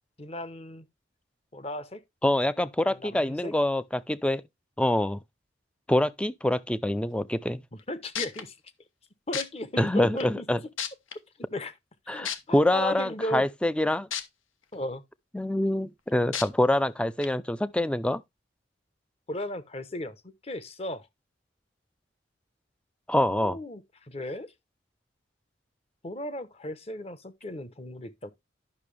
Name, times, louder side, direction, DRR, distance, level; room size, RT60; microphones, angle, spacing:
voice 1, 0.2-0.9 1.5-2.0 2.8-3.5 7.9-8.6 9.3-10.4 11.5-11.7 12.1-13.4 14.7-15.0 19.3-21.1 23.3-23.8 24.1-24.5 26.0-28.3, left 1 dB, 30° left, 0.9 m, -35 dB
voice 2, 2.2-4.4 4.8-5.2 5.9-7.6 9.8-10.6 12.1-14.1 15.3-18.2 23.1-23.6, left 1 dB, 5° left, 0.4 m, -25 dB
sound 1, 7.8-7.9 8.1-8.4 9.3-9.4 10.2-10.3 10.8-11.1 12.2-12.4 14.1-14.2 14.7-14.8 16.3-16.4 17.2-17.3, left 8 dB, 85° left, 1.1 m, -31 dB
10.5 x 6.1 x 3.3 m
head